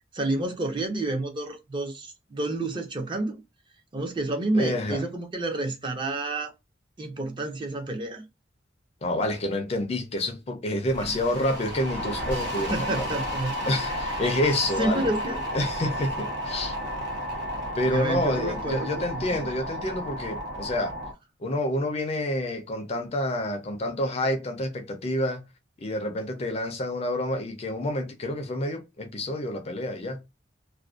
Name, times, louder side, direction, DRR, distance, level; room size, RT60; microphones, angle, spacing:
voice 1, 0.1-3.4 3.9-6.5 7.0-8.2 11.0-11.1 12.7-14.3 14.8-15.4 17.9-19.4, right 2 dB, 25° right, 0.5 m, -30 dB
voice 2, 4.5-5.0 9.0-13.1 13.7-15.1 15.5-16.8 17.7-20.9 21.4-25.4 25.8-30.2, left 1 dB, 35° left, 0.4 m, -28 dB
sound 1, 10.9-21.1, equal, 70° right, 0.8 m, -32 dB
2.4 x 2.1 x 2.4 m
head